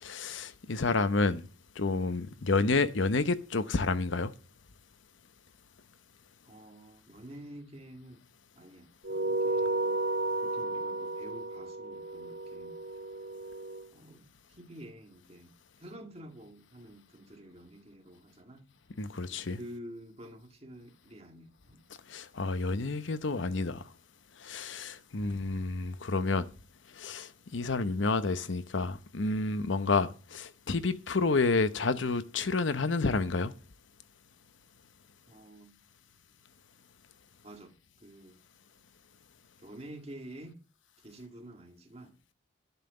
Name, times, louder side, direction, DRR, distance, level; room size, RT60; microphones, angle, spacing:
voice 1, 0.0-1.5 1.8-4.3 19.0-19.6 22.1-23.8 24.4-26.5 26.9-33.5, left 3 dB, 70° left, 0.8 m, -29 dB
voice 2, 6.4-8.2 8.5-10.1 10.4-12.8 13.9-15.5 15.8-18.6 19.3-21.8 35.3-35.8 37.4-37.7 38.0-38.4 39.6-40.6 41.0-42.2, right 1 dB, 30° right, 1.9 m, -49 dB
sound 1, 9.0-13.8, right 2 dB, 60° right, 1.2 m, -33 dB
11.0 x 5.8 x 7.7 m
head